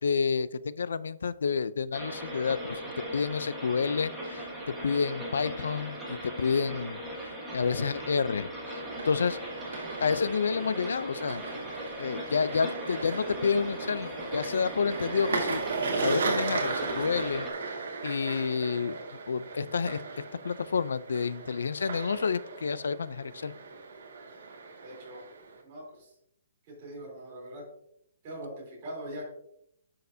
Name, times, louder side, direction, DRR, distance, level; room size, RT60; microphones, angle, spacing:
voice 1, 0.0-2.8 3.1-4.5 4.8-8.8 9.0-9.4 10.0-11.4 12.0-15.6 16.0-19.0 19.3-20.0 20.4-23.5, left 5 dB, 85° left, 17 dB, 0.5 m, -29 dB
sound 1, 1.9-17.5, equal, ahead, 1.4 m, -39 dB
voice 2, 7.6-8.0 24.8-25.3 25.6-26.1 26.7-27.7 28.2-29.3, equal, 25° right, -3 dB, 3.6 m, -42 dB
sound 2, 8.7-25.6, right 4 dB, 55° right, 2.0 m, -36 dB
11.0 x 6.5 x 2.8 m, 0.71 s
hypercardioid pair, 175°, 0 cm